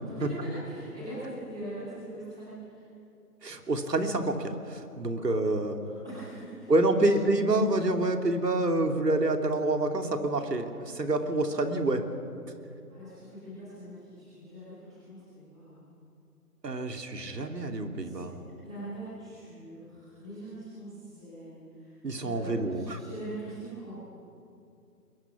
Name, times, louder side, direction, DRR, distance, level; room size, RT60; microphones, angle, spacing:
voice 1, 0.0-2.8 5.1-5.2 5.8-7.1 12.9-15.8 18.0-18.2 18.6-24.0, right 1 dB, 5° right, -12 dB, 0.9 m, -42 dB
voice 2, 3.4-5.8 6.7-12.0 16.6-18.3 22.0-23.0, right 2 dB, 85° right, 4 dB, 3.0 m, -27 dB
26.5 x 22.0 x 6.2 m, 2.6 s
hypercardioid pair, 170°, 47 cm